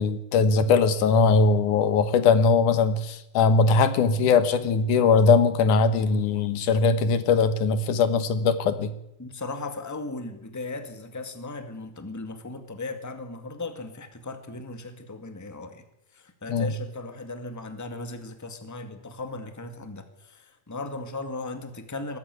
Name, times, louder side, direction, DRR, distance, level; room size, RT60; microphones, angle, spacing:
voice 1, 0.0-8.9 16.5-16.7, left 4 dB, 90° left, 11 dB, 2.8 m, -20 dB
voice 2, 9.2-15.8 16.1-22.2, left 3 dB, 5° left, 7 dB, 1.5 m, -37 dB
20.5 x 14.5 x 9.4 m, 0.87 s
omnidirectional pair, 3.4 m